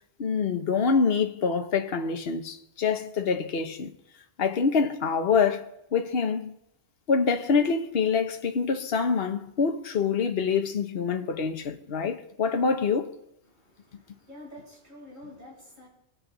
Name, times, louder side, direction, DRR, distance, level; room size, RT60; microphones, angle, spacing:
voice 1, 0.2-3.9 4.4-6.5 7.1-13.1, left 5 dB, 55° left, 1.2 m, -26 dB
voice 2, 13.5-15.9, left 1 dB, 40° right, 7.4 m, -48 dB
23.5 x 8.7 x 4.0 m
omnidirectional pair, 1.2 m